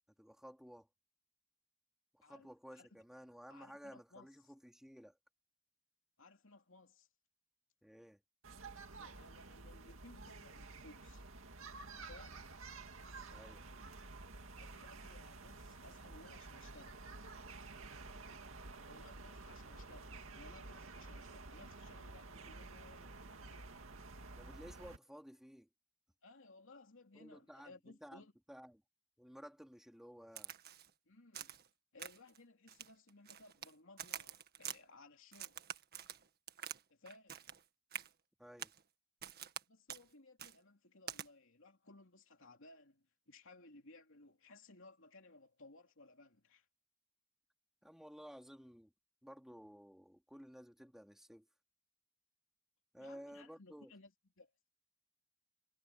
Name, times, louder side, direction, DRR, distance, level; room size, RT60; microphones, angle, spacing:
voice 1, 0.2-0.9 2.1-5.2 7.8-8.2 13.3-13.6 24.4-25.7 27.1-28.8 29.2-30.5 38.4-38.7 47.8-48.9 49.2-51.5 52.9-53.9, equal, ahead, 3.8 m, -55 dB
voice 2, 2.2-3.0 3.5-4.5 6.2-7.1 9.0-11.3 12.0-12.4 14.6-17.1 18.9-23.7 26.2-28.3 31.0-31.6 31.9-35.6 36.9-37.5 39.7-46.7 53.0-54.1 54.4-54.5, left 2 dB, 65° left, 3.2 m, -60 dB
sound 1, 8.4-25.0, right 3 dB, 65° right, 2.4 m, -51 dB
Crack, 30.4-30.9 31.3-31.7 32.0-32.4 32.7-33.7 34.0-34.8 35.3-36.8 37.1-37.6 37.9-38.1 38.6-38.8 39.2-39.6 39.9-40.0 40.4-40.5 41.1-41.3, right 9 dB, 50° right, 1.7 m, -47 dB
head